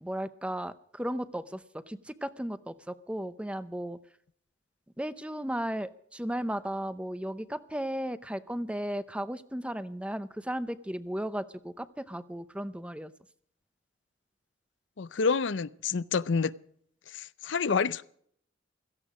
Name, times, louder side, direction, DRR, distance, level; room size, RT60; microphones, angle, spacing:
voice 1, 0.0-4.0 5.0-13.1, equal, 5° right, 0.7 m, -35 dB
voice 2, 15.0-16.5 17.1-18.0, left 5 dB, 75° left, 0.6 m, -28 dB
16.5 x 14.5 x 5.0 m
head